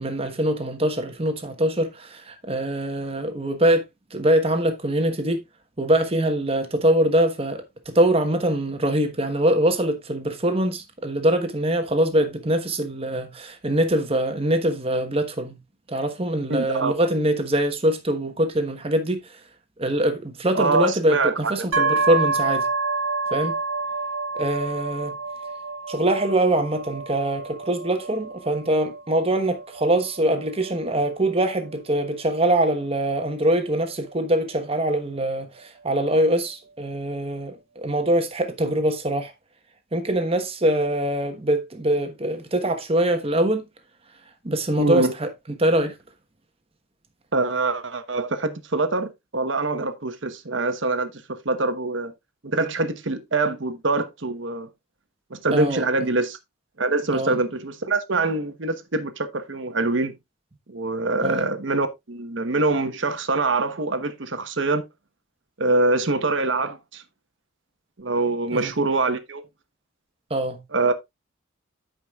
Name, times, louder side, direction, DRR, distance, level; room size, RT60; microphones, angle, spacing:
voice 1, 0.0-3.8 4.1-5.4 5.8-15.6 15.9-19.4 19.8-22.7 23.3-23.6 24.3-25.1 25.9-39.3 39.9-43.6 44.4-45.3 45.6-46.0 55.5-55.8 57.1-57.4 61.2-61.5 68.5-68.7 70.3-70.6, right 1 dB, 30° right, 1.1 m, -23 dB
voice 2, 16.5-16.9 20.5-21.3 21.8-21.9 44.8-45.1 47.3-52.1 52.4-54.7 55.3-56.4 56.8-60.1 60.7-64.8 65.6-67.0 68.0-69.4 70.7-70.9, right 3 dB, 65° right, 1.1 m, -24 dB
sound 1, 21.7-35.4, right 3 dB, 85° right, 1.1 m, -29 dB
14.0 x 5.1 x 2.4 m
head